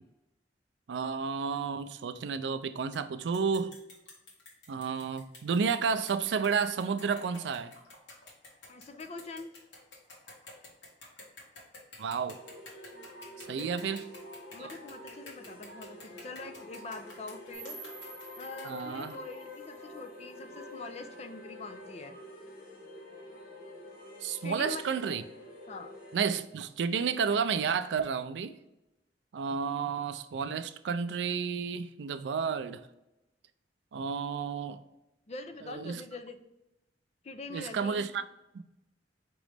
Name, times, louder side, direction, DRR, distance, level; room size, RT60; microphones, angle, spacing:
voice 1, 0.9-3.7 4.7-7.7 12.0-12.4 13.5-14.1 14.6-14.7 18.6-19.2 24.2-25.2 26.1-28.5 29.3-32.8 33.9-34.8 35.6-36.0 37.5-38.2, right 6 dB, 75° right, 0.4 m, -31 dB
sound 1, 2.9-3.0 3.3-19.2, left 2 dB, 80° left, 1.4 m, -51 dB
voice 2, 8.7-9.5 13.5-13.9 14.5-17.9 18.4-22.2 24.4-25.2 25.7-25.9 35.3-36.4 37.2-38.1, left 3 dB, 40° left, 0.5 m, -44 dB
sound 2, 12.2-26.4, left 2 dB, 55° left, 1.1 m, -48 dB
sound 3, 17.5-20.5, right 4 dB, 5° right, 1.4 m, -50 dB
5.0 x 3.0 x 3.3 m
head